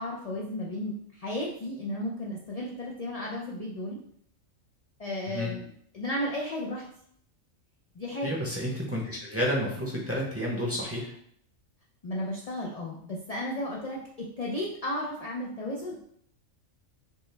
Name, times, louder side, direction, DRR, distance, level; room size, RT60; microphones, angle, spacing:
voice 1, 0.0-4.0 5.0-5.7 5.9-6.8 8.0-8.3 12.0-16.0, left 1 dB, 60° left, -3 dB, 0.3 m, -34 dB
voice 2, 8.2-11.1, equal, 15° right, -4 dB, 0.6 m, -30 dB
5.2 x 2.1 x 3.2 m, 0.68 s
omnidirectional pair, 1.4 m